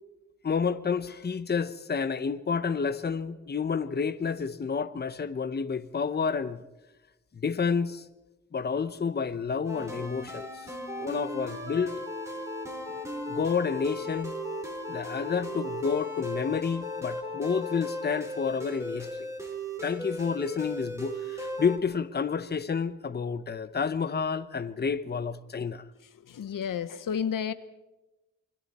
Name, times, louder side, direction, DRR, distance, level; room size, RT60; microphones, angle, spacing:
voice 1, 0.4-6.6 7.3-8.1 8.5-12.0 12.9-13.0 13.3-14.3 14.9-19.3 19.8-25.8, left 5 dB, 30° left, 0.9 m, -30 dB
sound 1, 9.6-21.8, left 1 dB, 10° right, 3.6 m, -36 dB
voice 2, 26.3-27.5, left 7 dB, 85° left, 1.0 m, -31 dB
28.5 x 22.0 x 4.2 m
wide cardioid pair, 125°, 32 cm